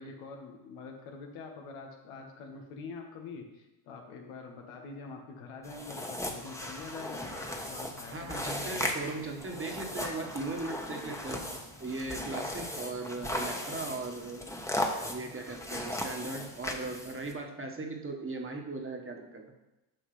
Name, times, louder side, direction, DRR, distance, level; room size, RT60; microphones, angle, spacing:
voice 1, 0.0-8.5, left 4 dB, 90° left, 2 dB, 1.4 m, -45 dB
sound 1, 5.6-17.3, left 1 dB, 5° left, 1.1 m, -37 dB
voice 2, 8.1-11.4 11.8-14.4 15.1-19.4, right 3 dB, 25° right, 1 dB, 1.4 m, -38 dB
9.2 x 5.7 x 3.3 m, 0.98 s
supercardioid pair, 70°, 50 cm